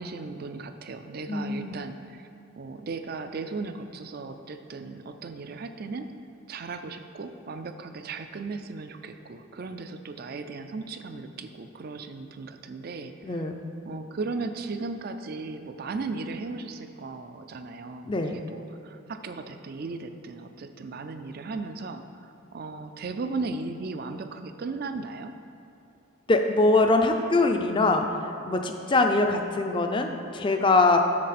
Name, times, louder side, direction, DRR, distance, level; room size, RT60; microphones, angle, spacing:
voice 1, 0.0-2.3 2.6-6.1 6.5-13.5 13.8-25.3, right 3 dB, 45° right, 8 dB, 0.4 m, -36 dB
voice 2, 1.3-1.8 13.2-13.5 18.0-18.3 26.3-31.0, left 3 dB, 25° left, 5 dB, 0.4 m, -23 dB
7.5 x 6.6 x 4.2 m, 2.9 s
head